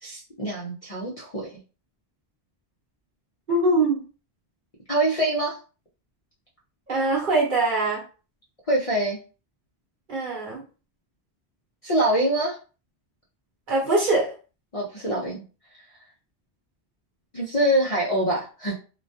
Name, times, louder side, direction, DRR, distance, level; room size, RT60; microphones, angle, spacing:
voice 1, 0.0-1.5 4.9-5.6 8.7-9.2 11.8-12.6 14.7-15.4 17.3-18.7, right 1 dB, 45° left, -4 dB, 0.5 m, -24 dB
voice 2, 3.5-4.0 6.9-8.0 10.1-10.6 13.7-14.3, right 2 dB, 50° right, -3 dB, 1.0 m, -22 dB
2.3 x 2.1 x 2.6 m, 0.35 s
omnidirectional pair, 1.1 m